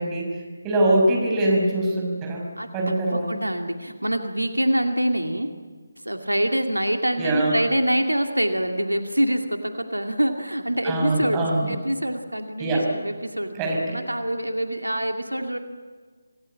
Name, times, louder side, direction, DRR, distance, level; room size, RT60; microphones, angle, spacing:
voice 1, 0.0-2.4 2.7-3.3 7.2-7.6 10.8-11.7 12.6-12.9 13.5-14.0, right 1 dB, 15° right, -1 dB, 5.7 m, -23 dB
voice 2, 2.6-5.5 6.0-13.6 13.9-15.6, right 1 dB, 85° right, 5 dB, 2.4 m, -25 dB
27.0 x 18.5 x 8.7 m, 1.5 s
figure-of-eight pair, 155°, 0 cm